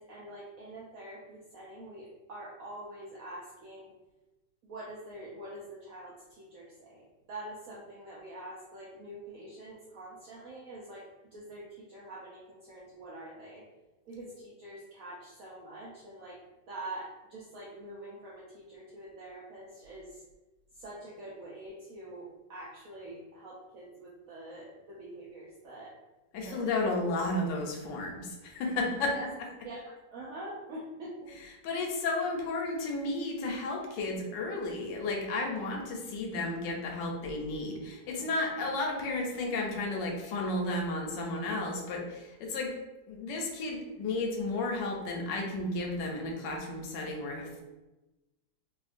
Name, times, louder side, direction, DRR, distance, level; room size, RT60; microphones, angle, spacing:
voice 1, 0.0-3.9 4.6-13.6 14.1-16.4 16.7-20.2 20.7-26.0 26.4-26.6 29.1-29.3 29.6-31.3, right 1 dB, 85° right, -5 dB, 0.7 m, -45 dB
voice 2, 26.3-29.2 31.6-42.8 43.1-47.6, left 2 dB, 75° left, 1 dB, 1.2 m, -33 dB
3.5 x 2.3 x 2.5 m, 1.1 s
omnidirectional pair, 2.0 m